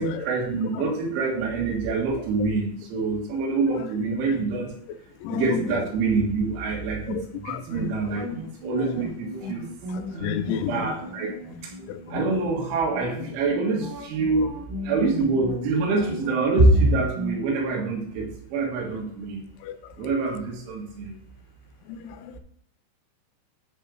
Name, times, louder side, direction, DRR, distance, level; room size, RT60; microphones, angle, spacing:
voice 1, 0.0-4.7 5.3-9.7 10.2-11.3 11.6-11.7 12.1-14.5 14.8-19.4 20.0-21.1, right 3 dB, 85° right, -2 dB, 4.0 m, -25 dB
voice 2, 7.1-7.9 10.2-10.9 11.9-12.2 19.6-19.8 21.9-22.4, left 8 dB, 85° left, 11 dB, 2.9 m, -31 dB
sound 1, 7.7-17.4, left 1 dB, 60° right, 3.5 m, -36 dB
10.0 x 3.7 x 4.7 m, 0.74 s
omnidirectional pair, 5.3 m